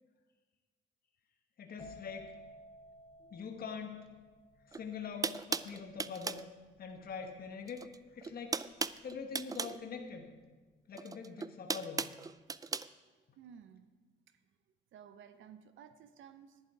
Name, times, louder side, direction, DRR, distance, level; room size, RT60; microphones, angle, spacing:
voice 1, 1.6-2.4 3.2-4.0 4.6-6.4 6.8-8.6 9.0-10.3 10.9-12.1, left 6 dB, 50° left, 4 dB, 1.2 m, -44 dB
sound 1, 1.8-9.4 9.6-10.1, equal, 10° left, 2.4 m, -56 dB
sound 2, 4.7-4.8 5.2-6.5 7.7-8.0 8.2-9.8 10.9-12.9, right 4 dB, 20° right, 0.3 m, -37 dB
voice 2, 13.1-13.9 14.3-14.4 14.9-16.6, right 8 dB, 75° right, 11 dB, 0.7 m, -55 dB
11.0 x 10.5 x 4.7 m, 1.3 s
cardioid pair, 90°, 20 cm